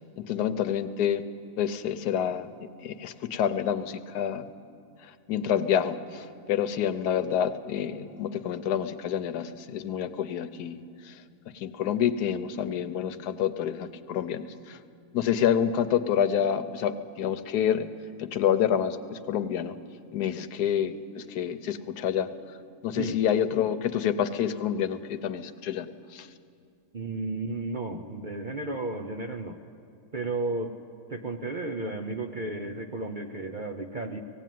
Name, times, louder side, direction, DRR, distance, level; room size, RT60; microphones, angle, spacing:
voice 1, 0.2-1.2 1.6-2.5 2.8-4.5 5.3-11.1 11.5-14.8 15.1-17.9 18.2-19.7 20.1-22.3 22.8-26.3, left 9 dB, 85° left, 11 dB, 1.3 m, -28 dB
voice 2, 26.9-29.6 30.1-30.8 31.1-34.2, right 2 dB, 45° right, 4 dB, 0.6 m, -33 dB
18.0 x 16.5 x 9.2 m, 2.4 s
omnidirectional pair, 1.7 m